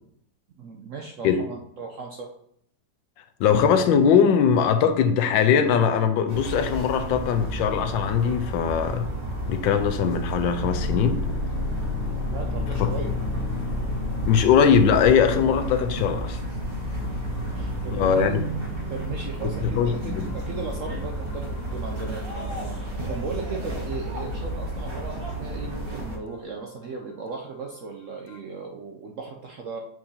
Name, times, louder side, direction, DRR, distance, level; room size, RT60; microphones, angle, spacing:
voice 1, 0.6-2.3 12.3-13.1 17.2-18.4 18.9-29.8, right 4 dB, 70° right, 0.7 m, -37 dB
voice 2, 3.4-9.1 9.5-11.2 12.8-12.9 14.3-16.4 17.9-18.5 19.7-20.3, left 7 dB, 90° left, 1.4 m, -21 dB
sound 1, 6.3-26.2, right 1 dB, 30° right, 1.4 m, -31 dB
sound 2, 10.7-14.7 20.3-21.8 22.0-22.2 28.3-28.4, left 5 dB, 70° left, 1.1 m, -32 dB
7.4 x 4.7 x 2.8 m
omnidirectional pair, 2.0 m